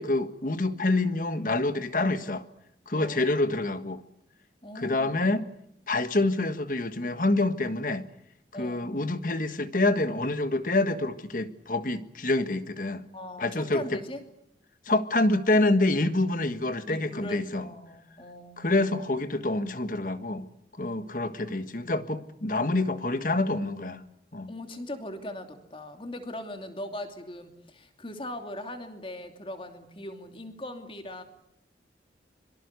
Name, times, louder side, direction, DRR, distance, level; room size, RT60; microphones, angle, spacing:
voice 1, 0.0-2.4 2.9-4.0 4.7-5.4 5.9-8.0 8.6-13.1 13.4-14.0 14.9-17.6 18.6-20.5 20.8-24.0 24.3-24.5, left 2 dB, 45° left, 1.5 m, -27 dB
voice 2, 2.9-3.3 4.6-5.3 8.5-8.9 13.1-14.2 16.9-18.7 24.5-31.2, left 1 dB, 30° left, 2.8 m, -40 dB
25.0 x 24.0 x 8.3 m
head